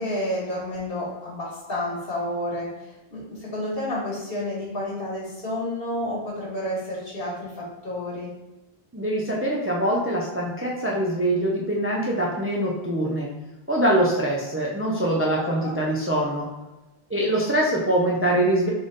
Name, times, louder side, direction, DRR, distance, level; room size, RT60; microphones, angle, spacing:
voice 1, 0.0-8.3 15.4-15.8, left 1 dB, 60° left, -5 dB, 1.7 m, -30 dB
voice 2, 8.9-13.3 13.7-16.5 17.1-18.7, right 1 dB, 15° right, -3 dB, 0.5 m, -23 dB
3.5 x 3.4 x 4.0 m, 1.0 s
omnidirectional pair, 1.1 m